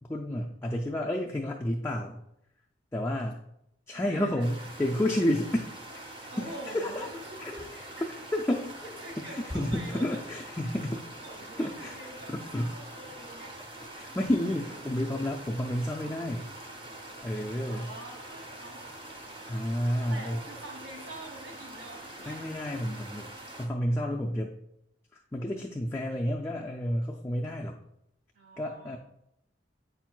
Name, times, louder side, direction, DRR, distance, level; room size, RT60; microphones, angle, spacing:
voice 1, 0.1-2.2 2.9-3.4 3.9-5.7 6.2-7.1 7.4-7.5 8.3-8.7 9.3-11.0 11.6-12.0 12.3-12.8 14.0-16.5 17.2-17.9 19.5-20.4 22.3-23.3 23.6-24.5 25.1-27.8 28.6-29.0, left 1 dB, 15° left, 0 dB, 0.3 m, -30 dB
voice 2, 3.9-4.7 6.3-8.3 8.7-10.2 11.2-13.6 14.7-15.3 17.6-19.4 20.0-22.6 28.3-29.0, right 1 dB, 65° right, -1 dB, 2.1 m, -46 dB
sound 1, 4.4-23.7, right 1 dB, 25° right, 0.7 m, -45 dB
7.9 x 5.9 x 2.3 m, 0.80 s
head